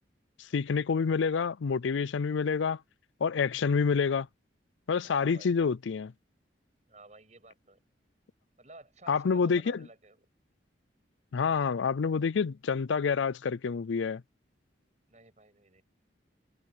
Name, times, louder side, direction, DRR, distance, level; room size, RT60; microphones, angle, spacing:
voice 1, 0.5-2.8 3.2-4.3 4.9-6.1 9.1-9.8 11.3-14.2, left 5 dB, 85° left, 0.4 m, -28 dB
voice 2, 5.0-5.5 6.9-7.8 8.6-10.3 15.1-15.8, right 2 dB, 40° right, 6.8 m, -53 dB
head